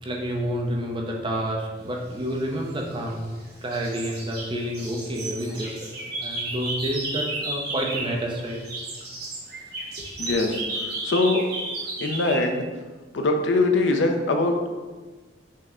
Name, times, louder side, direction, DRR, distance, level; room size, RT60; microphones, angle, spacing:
voice 1, 0.0-3.3 3.6-8.6 10.0-10.1, equal, 25° right, 0 dB, 0.6 m, -29 dB
sound 1, 2.6-3.4 3.7-8.2 8.5-12.5, right 2 dB, 55° right, 1.2 m, -33 dB
voice 2, 10.2-10.6 11.0-11.4 12.0-12.7 13.1-14.5, left 2 dB, 80° left, 4 dB, 0.5 m, -22 dB
5.5 x 2.1 x 3.6 m, 1.3 s
head